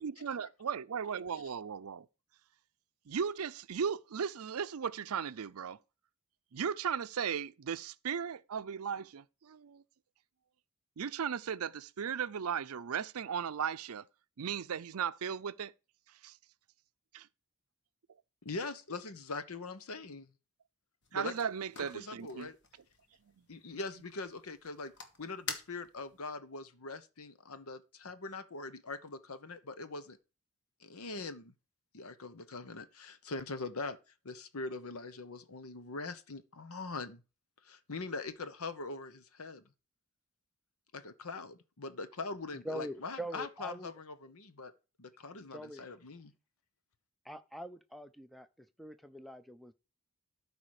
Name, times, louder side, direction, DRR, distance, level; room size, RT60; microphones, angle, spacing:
voice 1, 0.0-2.1 3.1-5.8 6.5-9.8 11.0-14.0 14.4-15.7 16.2-16.4 17.1-17.3 21.1-22.5, right 7 dB, 80° right, 0.5 m, -36 dB
voice 2, 18.4-20.3 21.1-21.3 21.9-22.6 23.5-24.9 25.2-30.2 30.8-31.5 31.9-34.0 34.2-37.2 37.6-39.6 40.9-44.7 45.0-46.3, left 3 dB, 75° left, 1.0 m, -42 dB
sound 1, 21.0-26.2, left 4 dB, 50° left, 1.6 m, -48 dB
voice 3, 42.5-43.9 45.5-45.9 47.2-49.7, equal, ahead, 0.5 m, -44 dB
13.0 x 5.0 x 4.9 m
head